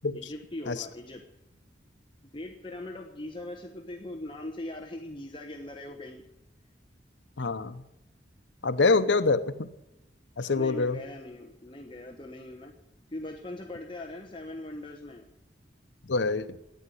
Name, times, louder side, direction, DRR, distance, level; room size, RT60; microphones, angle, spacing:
voice 1, 0.1-1.2 2.2-6.2 8.8-9.3 10.5-12.7 13.1-15.2, left 1 dB, 30° left, 2 dB, 1.2 m, -41 dB
voice 2, 7.4-7.8 8.6-9.7 10.4-11.0 16.0-16.6, left 3 dB, 85° left, 13 dB, 0.9 m, -25 dB
12.0 x 9.4 x 9.9 m, 0.94 s
head